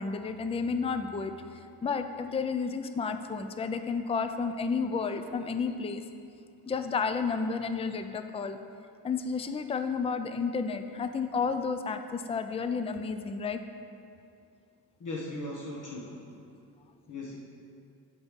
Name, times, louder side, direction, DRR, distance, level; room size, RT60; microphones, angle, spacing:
voice 1, 0.0-1.3 1.8-6.0 6.7-8.6 9.0-13.6, left 5 dB, 15° left, 8 dB, 0.4 m, -31 dB
voice 2, 15.0-16.3 17.1-17.4, left 2 dB, 50° left, -4 dB, 1.3 m, -38 dB
7.9 x 5.4 x 7.2 m, 2.5 s
cardioid pair, 100°, 40 cm